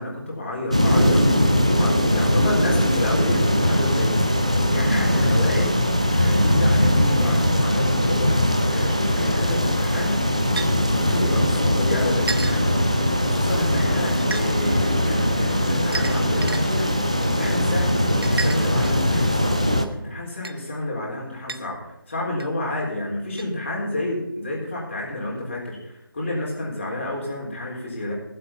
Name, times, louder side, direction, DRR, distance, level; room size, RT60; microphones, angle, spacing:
voice 1, 0.0-10.2 11.0-12.8 13.2-18.0 18.3-19.6 19.9-28.1, left 1 dB, 30° left, -3 dB, 3.8 m, -30 dB
sound 1, 0.7-19.8, equal, 15° right, 0.3 m, -20 dB
sound 2, 10.6-10.7 12.3-12.6 14.2-14.5 15.9-16.6 18.2-19.1 20.4-20.6 21.5-21.6 22.4-22.5 23.4-23.5, right 4 dB, 75° right, 0.9 m, -30 dB
16.5 x 7.8 x 5.6 m, 0.84 s
figure-of-eight pair, 175°, 12 cm